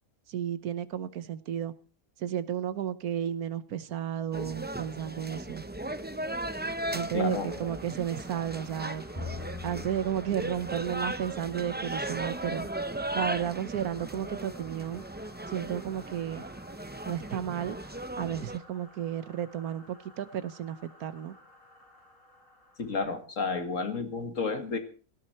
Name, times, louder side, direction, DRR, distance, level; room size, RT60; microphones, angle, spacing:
voice 1, 0.3-1.7 2.2-5.6 6.9-9.0 9.6-12.7 13.1-15.0 15.5-16.4 17.0-17.8 18.2-21.4, right 10 dB, 90° right, 14 dB, 1.4 m, -33 dB
sound 1, 4.3-18.6, right 1 dB, 15° right, 0.4 m, -37 dB
sound 2, 6.1-23.1, left 1 dB, 40° left, 4.3 m, -55 dB
voice 2, 7.1-7.7 22.8-24.8, left 4 dB, 60° left, 8 dB, 2.2 m, -31 dB
Bowed string instrument, 9.1-15.3, left 4 dB, 15° left, 1.5 m, -46 dB
17.5 x 14.5 x 4.3 m, 0.37 s
omnidirectional pair, 1.5 m